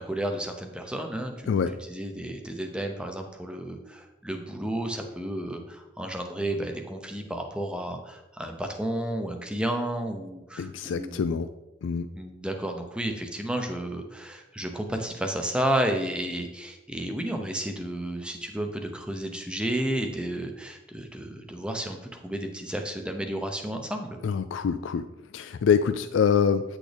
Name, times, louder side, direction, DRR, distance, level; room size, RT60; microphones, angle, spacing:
voice 1, 0.0-11.4 12.1-24.2, right 1 dB, 5° right, 4 dB, 0.7 m, -32 dB
voice 2, 10.6-11.5 11.8-12.1 24.2-25.0 25.3-26.6, left 6 dB, 80° left, 10 dB, 0.3 m, -25 dB
9.1 x 6.3 x 3.4 m, 1.0 s
head